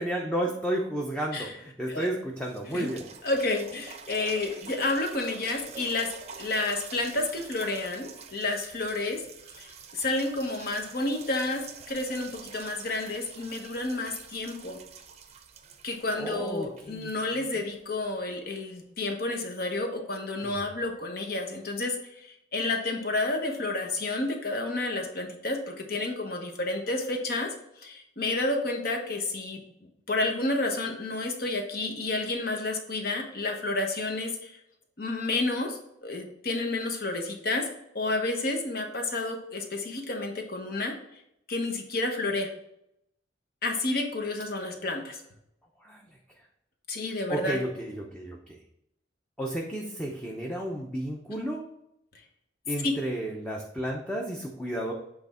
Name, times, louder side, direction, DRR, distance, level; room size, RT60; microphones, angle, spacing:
voice 1, 0.0-3.0 16.2-17.1 20.4-20.7 45.8-46.0 47.3-48.6 49.4-51.6 52.7-54.9, right 1 dB, 5° left, -1 dB, 0.7 m, -32 dB
sound 1, 2.4-18.1 18.7-18.8, right 5 dB, 35° right, 0.6 m, -47 dB
voice 2, 3.2-6.1 6.4-9.2 9.6-14.8 15.8-27.5 27.8-29.6 30.1-34.6 35.0-37.6 37.9-40.9 41.5-42.5 43.6-45.2 46.9-47.6 52.8-53.0, left 2 dB, 55° left, 3 dB, 1.1 m, -30 dB
7.8 x 3.5 x 4.2 m, 0.78 s
head